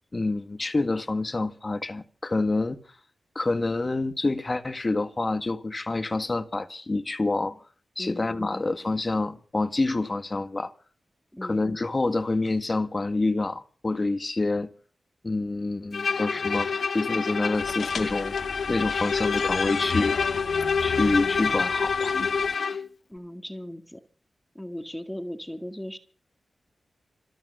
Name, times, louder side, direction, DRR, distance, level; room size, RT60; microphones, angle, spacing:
voice 1, 0.1-2.8 3.3-7.6 7.9-10.7 11.4-14.7 15.2-16.7 16.9-18.4 18.7-20.2 20.8-22.1, left 2 dB, 35° left, 1.6 m, -27 dB
voice 2, 8.0-8.6 11.3-11.7 23.1-24.0 24.6-26.0, equal, 5° left, 2.0 m, -37 dB
Bowed string instrument, 15.9-22.9, left 5 dB, 70° left, 1.0 m, -27 dB
sound 1, 17.5-22.5, left 6 dB, 85° left, 2.2 m, -38 dB
27.0 x 9.1 x 5.5 m
wide cardioid pair, 80°, 0 cm